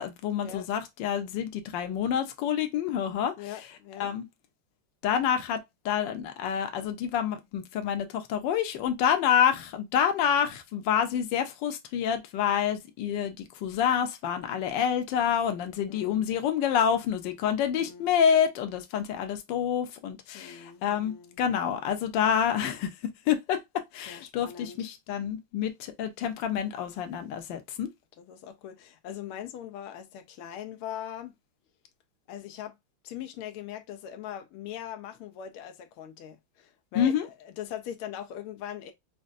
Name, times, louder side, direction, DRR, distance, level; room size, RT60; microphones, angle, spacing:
voice 1, 0.0-3.3 4.0-4.2 5.0-22.9 23.3-27.9 36.9-37.3, left 8 dB, 65° left, 1.3 m, -28 dB
voice 2, 3.4-4.1 15.9-16.2 17.8-18.1 20.3-21.4 24.1-24.8 28.2-31.3 32.3-32.8 33.0-37.1 37.4-38.9, left 10 dB, 85° left, 1.5 m, -41 dB
5.2 x 2.2 x 2.4 m
omnidirectional pair, 2.3 m